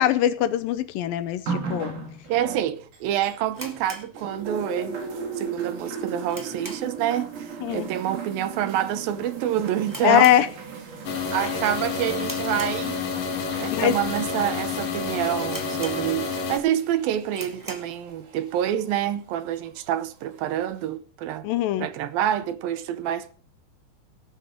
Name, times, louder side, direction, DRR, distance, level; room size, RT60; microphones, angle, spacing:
voice 1, 0.0-1.9 7.6-7.9 10.0-10.5 13.7-14.0 21.4-21.9, left 11 dB, 75° left, 2.3 m, -21 dB
sound 1, 1.5-3.8 4.2-18.9 19.8-19.9, right 5 dB, 55° right, 3.9 m, -37 dB
voice 2, 2.3-10.3 11.3-13.0 13.6-21.5 21.8-23.3, right 11 dB, 75° right, 2.6 m, -27 dB
sound 2, 3.5-4.9 5.1-5.2 5.8-7.1 7.4-7.7 8.0-8.1 8.8-9.0 9.3-9.4 9.8-11.0 11.3-11.6 12.2-13.3 13.9-14.0 14.6-14.7 14.9-15.0 15.5-16.4 16.8-16.9 17.3-18.0, right 1 dB, 25° right, 0.4 m, -41 dB
sound 3, 11.0-16.6, left 5 dB, 50° left, 2.4 m, -29 dB
18.5 x 9.4 x 3.7 m
omnidirectional pair, 4.4 m